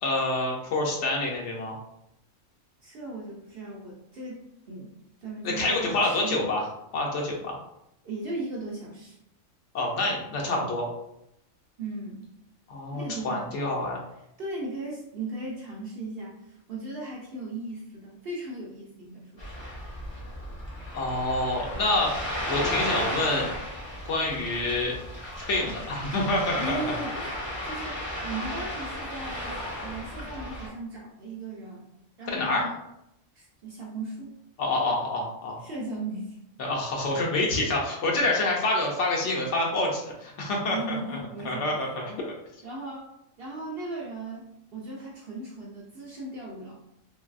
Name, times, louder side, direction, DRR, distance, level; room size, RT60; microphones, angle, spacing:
voice 1, 0.0-1.8 5.4-6.6 6.9-7.6 9.7-10.9 12.7-14.0 20.9-22.1 22.5-23.6 24.1-25.0 25.5-26.9 32.3-32.7 34.6-35.6 36.6-41.2 41.4-42.2, left 2 dB, 70° left, -2 dB, 0.9 m, -27 dB
voice 2, 2.8-4.4 4.7-4.9 5.2-6.4 8.0-9.2 11.8-12.3 12.9-13.5 14.4-19.6 26.6-31.9 32.2-32.8 33.3-34.3 35.6-36.4 40.7-41.9 42.6-43.1 43.4-44.4 44.7-46.8, right 2 dB, 60° right, -3 dB, 0.7 m, -37 dB
Ocean, 19.4-30.7, left 1 dB, 25° left, 0.6 m, -34 dB
3.0 x 2.6 x 2.4 m, 0.82 s
omnidirectional pair, 1.4 m